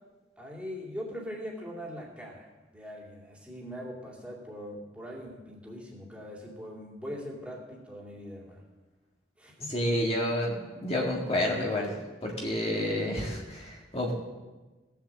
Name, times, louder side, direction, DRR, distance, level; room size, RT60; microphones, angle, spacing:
voice 1, 0.4-8.6 9.4-9.7, equal, 5° right, -3 dB, 2.7 m, -41 dB
voice 2, 9.7-11.9 12.2-14.1, left 1 dB, 30° left, -2 dB, 1.8 m, -29 dB
17.5 x 7.3 x 7.5 m, 1.2 s
head